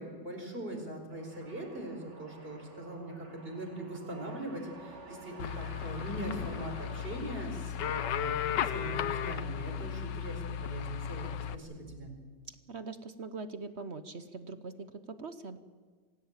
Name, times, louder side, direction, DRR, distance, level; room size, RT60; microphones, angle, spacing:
voice 1, 0.0-12.1, right 1 dB, 30° right, 3 dB, 4.8 m, -41 dB
sound 1, 1.1-7.8, right 2 dB, 75° right, 5.5 m, -52 dB
sound 2, 5.4-11.6, left 9 dB, 80° left, 1.5 m, -35 dB
voice 2, 12.5-15.6, right 4 dB, 45° right, 10 dB, 1.0 m, -42 dB
25.0 x 16.5 x 8.9 m, 1.5 s
omnidirectional pair, 1.9 m